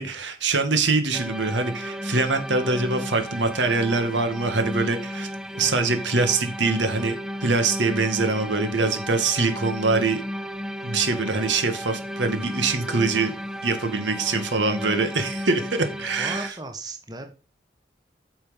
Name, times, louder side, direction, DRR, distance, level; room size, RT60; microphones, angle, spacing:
voice 1, 0.0-5.3 5.5-10.2 10.8-13.4 13.6-16.5, right 3 dB, 90° right, 7 dB, 2.0 m, -24 dB
sound 1, 1.1-16.5, equal, 5° right, 0.5 m, -34 dB
voice 2, 16.1-17.3, right 2 dB, 20° right, 6 dB, 1.3 m, -36 dB
9.4 x 6.1 x 5.3 m, 0.35 s
head